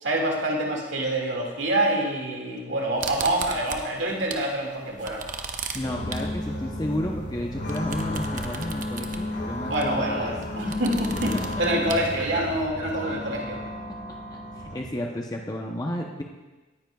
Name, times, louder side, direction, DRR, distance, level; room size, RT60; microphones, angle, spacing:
voice 1, 0.0-5.2 9.7-13.6, right 1 dB, 85° right, -1 dB, 2.1 m, -26 dB
sound 1, 3.0-4.5 4.8-12.6, right 5 dB, 45° right, 0.8 m, -37 dB
sound 2, 5.7-14.8, left 1 dB, 65° left, 2.0 m, -33 dB
voice 2, 5.7-10.3 11.3-11.9 14.1-16.2, left 1 dB, 20° left, 0 dB, 0.7 m, -32 dB
18.5 x 10.0 x 2.3 m, 1.2 s
head